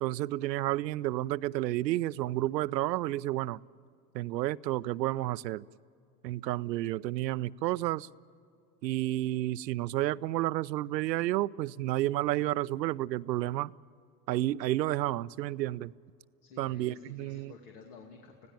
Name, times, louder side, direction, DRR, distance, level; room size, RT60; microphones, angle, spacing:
voice 1, 0.0-3.6 4.1-5.6 6.2-8.1 8.8-13.7 14.3-15.9 16.6-17.5, right 15 dB, 90° right, 19 dB, 0.6 m, -31 dB
voice 2, 16.4-18.5, left 4 dB, 70° left, 2 dB, 2.5 m, -51 dB
25.5 x 17.0 x 9.0 m, 2.4 s
hypercardioid pair, 105°, 49 cm